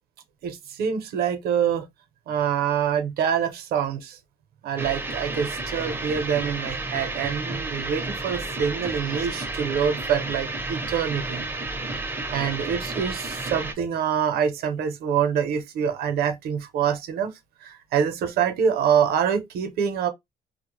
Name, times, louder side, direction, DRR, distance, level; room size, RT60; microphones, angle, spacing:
voice 1, 0.4-1.9 2.3-4.2 4.6-11.4 12.3-20.1, right 7 dB, 70° right, 0.7 m, -25 dB
sound 1, 4.8-13.7, right 2 dB, 10° right, 0.5 m, -31 dB
2.1 x 2.1 x 3.0 m
cardioid pair, 110°, 17 cm